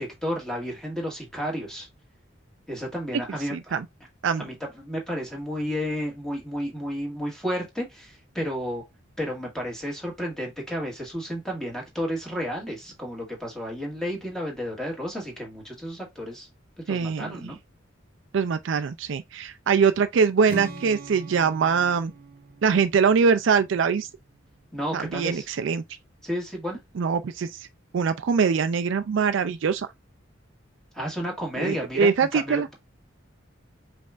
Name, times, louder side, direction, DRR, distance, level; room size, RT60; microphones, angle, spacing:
voice 1, 0.0-1.9 2.7-3.8 4.3-8.8 9.2-16.5 16.8-17.6 24.7-25.5 26.2-26.8 30.9-32.7, equal, 5° left, 1.7 m, -32 dB
voice 2, 3.5-3.9 4.2-4.4 16.9-17.5 18.3-22.1 22.6-24.1 24.9-25.8 27.0-27.6 27.9-29.9 31.6-32.7, right 6 dB, 65° right, 0.4 m, -23 dB
Strum, 20.5-24.6, right 2 dB, 45° right, 0.7 m, -42 dB
5.2 x 3.3 x 2.5 m
head